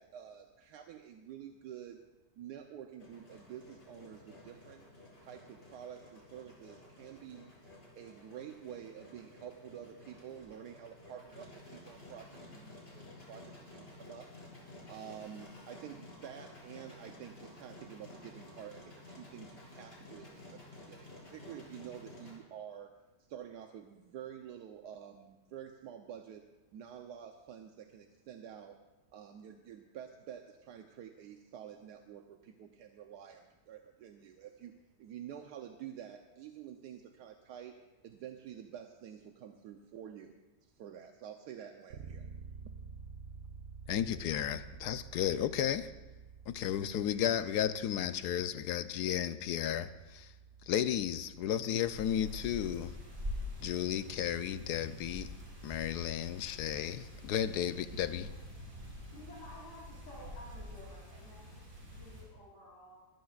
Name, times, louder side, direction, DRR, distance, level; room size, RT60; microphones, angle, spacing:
voice 1, 0.0-2.0 2.4-4.8 5.2-7.5 8.0-22.9 23.2-26.5 26.7-28.8 29.1-37.8 38.0-42.3, right 9 dB, 80° right, 5 dB, 1.3 m, -49 dB
Engine, 3.0-22.4, left 2 dB, 35° left, 3.9 m, -53 dB
Bass guitar, 41.9-51.7, right 5 dB, 60° right, 1.2 m, -51 dB
voice 2, 43.9-45.9 46.5-50.3 50.7-53.0 53.6-55.3 55.6-58.3, left 10 dB, 80° left, 12 dB, 1.2 m, -33 dB
sound 1, 51.8-62.2, left 1 dB, 35° right, 4.3 m, -46 dB
voice 3, 59.1-63.0, left 1 dB, 50° left, -8 dB, 4.5 m, -53 dB
22.5 x 14.5 x 2.4 m, 1.1 s
omnidirectional pair, 1.7 m